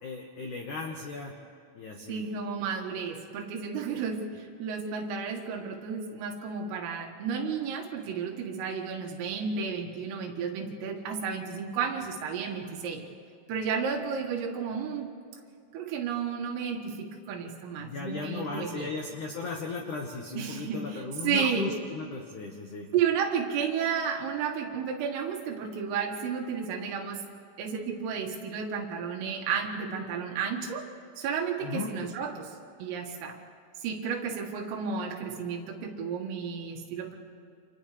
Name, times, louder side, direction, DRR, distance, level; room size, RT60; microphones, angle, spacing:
voice 1, 0.0-1.3 1.7-2.2 17.8-22.9 31.6-31.9, left 4 dB, 85° left, 1 dB, 1.7 m, -36 dB
voice 2, 2.1-13.0 13.5-15.1 15.7-18.9 20.4-21.6 22.9-27.2 27.6-30.9 31.2-32.5 32.8-33.4 33.8-37.2, right 6 dB, 80° right, 2 dB, 4.4 m, -32 dB
29.5 x 27.5 x 3.4 m, 2.4 s
omnidirectional pair, 5.9 m